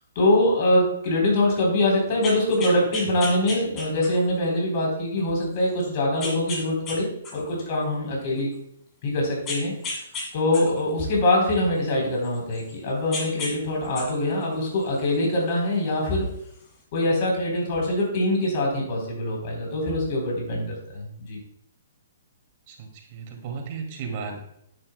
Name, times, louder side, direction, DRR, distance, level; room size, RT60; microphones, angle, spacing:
voice 1, 0.2-8.5 9.0-9.7 10.3-16.3 16.9-21.4, left 1 dB, 40° left, -1 dB, 3.6 m, -23 dB
sound 1, 2.1-4.4 4.9-5.0 6.2-7.0 7.2-8.6 9.5-10.3 10.5-12.7 13.1-13.5 13.8-15.3 16.3-16.4, left 2 dB, 20° left, 2.1 m, -34 dB
voice 2, 22.7-24.4, right 5 dB, 40° right, 1 dB, 2.2 m, -34 dB
10.0 x 9.2 x 2.2 m, 0.74 s
hypercardioid pair, 150°, 0 cm